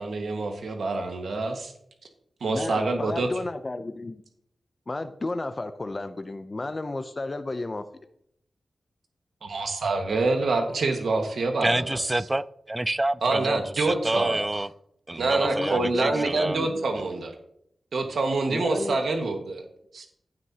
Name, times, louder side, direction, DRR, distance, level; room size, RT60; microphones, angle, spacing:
voice 1, 0.0-1.7 2.4-3.3 9.4-12.0 13.2-14.6 15.2-17.3 17.9-19.6 19.9-20.1, right 3 dB, 80° right, 1.5 m, -26 dB
voice 2, 2.5-4.2 4.9-7.8 15.4-16.8 18.5-19.0, left 2 dB, 30° left, 0.5 m, -32 dB
voice 3, 11.6-13.6 13.9-14.7 15.1-16.6, right 1 dB, 15° right, 0.4 m, -28 dB
15.5 x 7.9 x 2.8 m
wide cardioid pair, 100°, 0 cm